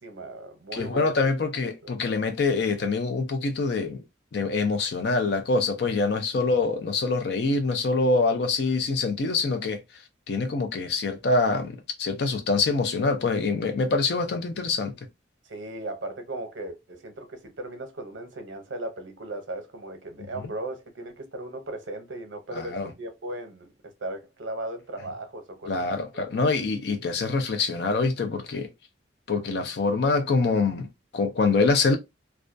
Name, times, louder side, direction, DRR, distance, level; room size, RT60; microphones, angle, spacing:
voice 1, 0.0-1.5 1.8-1.9 15.5-25.8 26.1-26.2 26.5-26.7, right 1 dB, 75° right, 0.7 m, -37 dB
voice 2, 0.7-4.0 4.3-9.8 10.3-14.9 22.5-22.9 25.7-28.7 29.3-30.9 31.1-32.0, left 3 dB, 55° left, 0.4 m, -25 dB
2.3 x 2.2 x 2.5 m
head